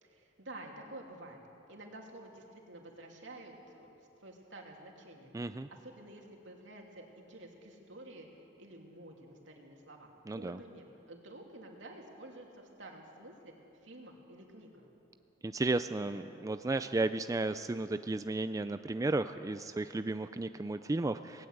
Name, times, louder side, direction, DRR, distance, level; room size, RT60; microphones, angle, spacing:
voice 1, 0.0-1.4 1.7-8.3 8.6-13.5 13.8-14.8, right 1 dB, 75° right, 1 dB, 2.9 m, -50 dB
voice 2, 5.3-5.7 10.3-10.6 15.4-21.5, right 2 dB, 20° right, 10 dB, 0.4 m, -33 dB
18.5 x 18.0 x 8.0 m, 2.9 s
head